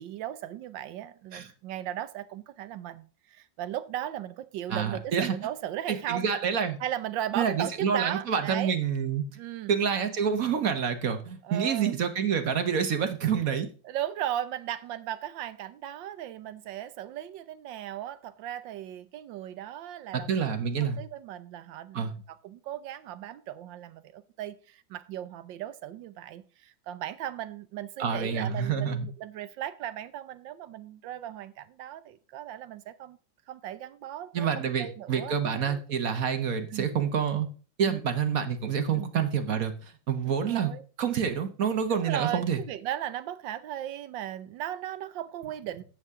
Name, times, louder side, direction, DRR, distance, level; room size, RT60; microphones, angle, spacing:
voice 1, 0.0-6.3 6.8-8.7 9.4-9.7 11.4-12.0 13.8-20.5 20.8-33.2 33.5-35.8 36.7-37.0 37.8-38.0 38.9-39.1 40.3-40.8 41.9-45.8, right 12 dB, 75° right, 15 dB, 1.3 m, -37 dB
voice 2, 4.7-5.3 5.9-6.8 7.3-9.2 9.7-13.7 20.1-21.0 21.9-22.1 28.0-29.1 34.3-37.5 37.8-40.7 41.0-42.6, right 7 dB, 55° right, 8 dB, 1.3 m, -28 dB
11.0 x 8.0 x 3.6 m, 0.39 s
omnidirectional pair, 2.1 m